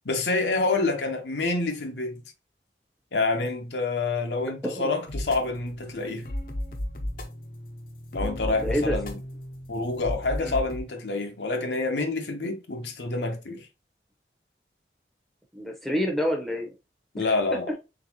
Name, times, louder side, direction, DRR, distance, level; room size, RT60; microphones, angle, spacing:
voice 1, 0.0-2.2 3.1-6.3 8.1-9.2 9.7-13.7 17.1-17.7, left 3 dB, 85° left, 0.9 m, -27 dB
sound 1, 5.1-10.8, left 1 dB, 50° left, 0.6 m, -34 dB
voice 2, 8.6-9.0 10.4-10.6 15.5-16.7 17.2-17.3, equal, ahead, 0.7 m, -27 dB
4.0 x 3.5 x 2.8 m
head